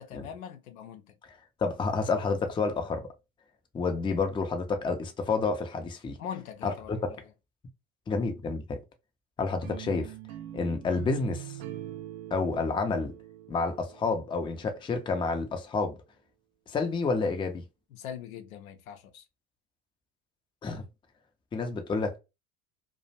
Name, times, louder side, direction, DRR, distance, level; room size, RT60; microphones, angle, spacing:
voice 1, 0.0-1.1 6.2-7.1 17.9-19.2, left 8 dB, 75° left, 0.6 m, -41 dB
voice 2, 1.3-3.1 3.7-6.2 6.6-7.2 8.1-8.8 9.4-10.1 10.5-11.6 12.3-13.1 13.5-16.0 16.7-17.6 20.6-20.8 21.5-22.2, left 4 dB, 10° left, 0.4 m, -29 dB
sound 1, 9.6-14.7, right 12 dB, 75° right, 0.5 m, -43 dB
2.4 x 2.1 x 2.7 m
hypercardioid pair, 70°, 42 cm